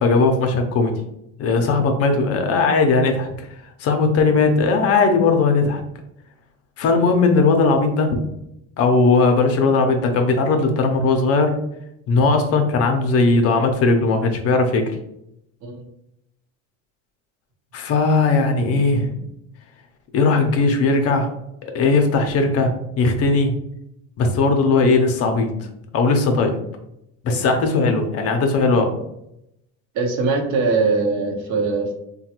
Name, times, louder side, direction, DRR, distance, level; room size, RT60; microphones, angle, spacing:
voice 1, 0.0-0.9 1.4-3.5 3.8-5.8 6.8-8.2 8.8-11.5 12.1-14.9 17.7-19.2 20.1-21.3 21.7-23.5 24.2-25.5 25.9-26.6 27.2-28.9, left 3 dB, 45° left, 5 dB, 0.6 m, -18 dB
voice 2, 29.9-31.9, right 4 dB, 55° right, 2 dB, 0.8 m, -21 dB
3.1 x 2.2 x 2.9 m, 0.80 s
supercardioid pair, 115°, 35 cm